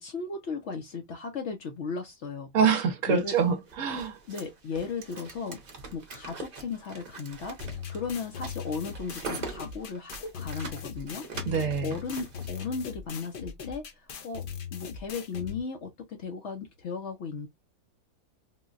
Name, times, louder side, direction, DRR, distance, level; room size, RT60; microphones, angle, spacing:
voice 1, 0.0-2.5 3.1-3.3 4.3-5.6 5.9-11.3 11.8-14.4 14.7-17.5, left 5 dB, 60° left, 0.8 m, -36 dB
voice 2, 2.5-4.2 11.5-12.0, right 6 dB, 65° right, 0.9 m, -25 dB
sound 1, 3.3-12.7, right 4 dB, 45° right, 0.6 m, -43 dB
sound 2, 7.6-15.6, left 7 dB, 85° left, 0.4 m, -39 dB
3.7 x 2.1 x 2.4 m
omnidirectional pair, 1.6 m